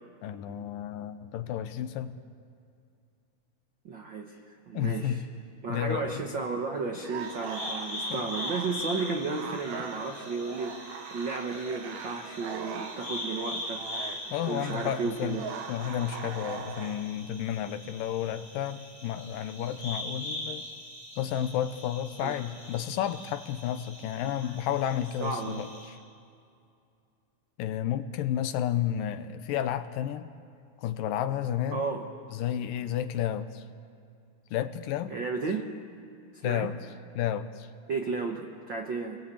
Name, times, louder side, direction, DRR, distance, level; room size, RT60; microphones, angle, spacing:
voice 1, 0.2-2.2 4.7-5.2 5.7-6.2 8.1-8.3 14.3-15.4 15.7-20.6 21.2-26.0 27.6-30.3 30.8-31.8 32.3-33.7 34.5-35.1 36.4-36.8 37.2-37.7, left 10 dB, 75° left, 10 dB, 2.3 m, -31 dB
voice 2, 3.8-5.2 5.6-15.5 22.2-22.4 24.4-24.6 25.2-25.6 31.7-32.1 35.1-35.7 36.3-36.7 37.9-39.2, right 4 dB, 90° right, 3 dB, 1.0 m, -33 dB
sound 1, 6.9-17.1, right 6 dB, 65° right, 2.1 m, -41 dB
sound 2, 7.2-25.9, left 1 dB, 40° right, 8.2 m, -41 dB
28.5 x 21.0 x 8.6 m, 2.4 s
omnidirectional pair, 4.3 m